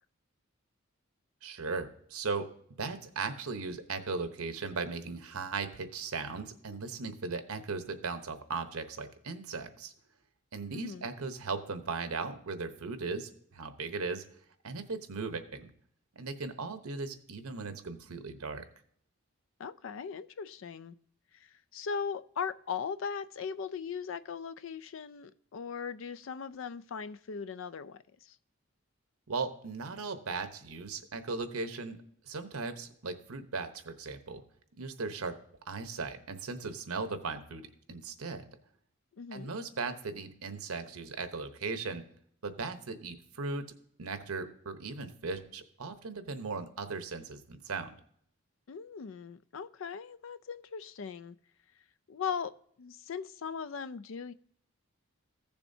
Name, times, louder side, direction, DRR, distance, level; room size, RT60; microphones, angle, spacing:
voice 1, 1.4-2.5 2.8-9.9 10.5-14.2 14.6-15.7 16.1-18.6 29.3-32.0 32.3-34.4 34.8-35.3 35.7-38.4 39.3-42.0 42.4-43.6 44.0-47.9, right 4 dB, 90° right, 8 dB, 0.9 m, -37 dB
voice 2, 10.7-11.1 19.6-21.0 21.3-28.4 39.2-39.5 48.7-51.4 52.1-54.3, left 6 dB, 65° left, 15 dB, 0.4 m, -39 dB
15.0 x 7.0 x 2.7 m, 0.65 s
head